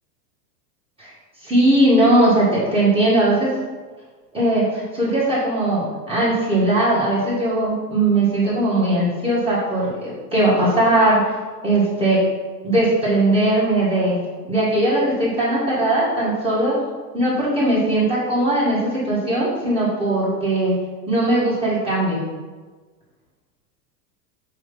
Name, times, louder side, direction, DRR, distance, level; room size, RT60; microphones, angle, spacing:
voice 1, 1.4-3.5 4.3-11.2 11.6-12.2 12.6-14.2 14.5-16.8 17.1-20.7 21.1-22.2, right 1 dB, 10° right, -9 dB, 1.8 m, -19 dB
6.5 x 2.8 x 5.3 m, 1.4 s
supercardioid pair, 135°, 50 cm